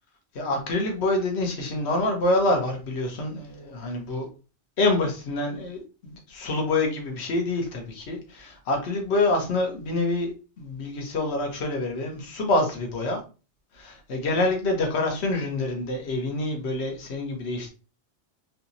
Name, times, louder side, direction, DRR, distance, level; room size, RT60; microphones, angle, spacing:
voice 1, 0.3-4.3 4.8-13.2 13.7-17.7, left 2 dB, 65° left, 2 dB, 1.2 m, -26 dB
3.3 x 2.9 x 2.6 m, 0.33 s
omnidirectional pair, 1.2 m